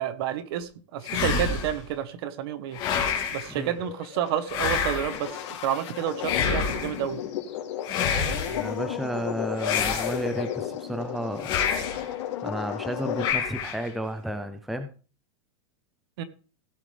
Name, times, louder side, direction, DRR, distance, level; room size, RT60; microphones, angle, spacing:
voice 1, 0.0-2.8 3.3-7.2 16.2-16.3, right 10 dB, 50° right, 11 dB, 1.3 m, -30 dB
sound 1, 1.0-1.8 2.7-3.5 4.5-5.3 6.2-7.0 7.8-8.7 9.6-10.5 11.4-12.1 13.2-13.9, left 6 dB, 30° left, 2.7 m, -28 dB
sound 2, 3.6-13.3, left 10 dB, 65° left, 2.9 m, -34 dB
voice 2, 8.5-11.5 12.4-14.9, right 1 dB, ahead, 8 dB, 0.5 m, -32 dB
16.5 x 6.9 x 3.4 m, 0.37 s
supercardioid pair, 170°, 16 cm